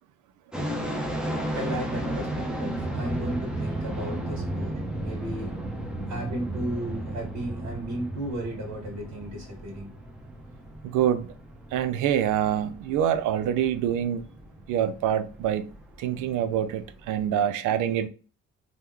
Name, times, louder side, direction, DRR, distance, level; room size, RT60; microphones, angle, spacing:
sound 1, 0.5-17.3, right 1 dB, 5° right, 0.6 m, -34 dB
voice 1, 1.5-5.6 6.1-9.9, right 1 dB, 65° right, 1.3 m, -34 dB
voice 2, 10.8-11.3 11.7-14.3 14.7-18.1, right 10 dB, 85° right, 0.5 m, -26 dB
3.0 x 2.1 x 3.5 m
cardioid pair, 90°, 30 cm